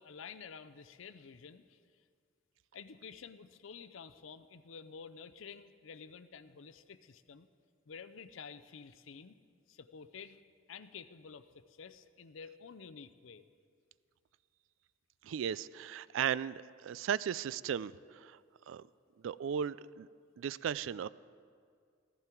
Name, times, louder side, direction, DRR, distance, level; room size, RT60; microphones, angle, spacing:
voice 1, 0.0-1.8 2.7-7.5 7.9-9.4 9.7-10.4 10.7-13.4, left 6 dB, 75° left, 13 dB, 0.6 m, -50 dB
voice 2, 15.2-18.4 18.7-18.9 19.2-20.1 20.4-21.1, right 8 dB, 70° right, 19 dB, 0.3 m, -36 dB
15.0 x 14.5 x 4.5 m, 2.1 s
head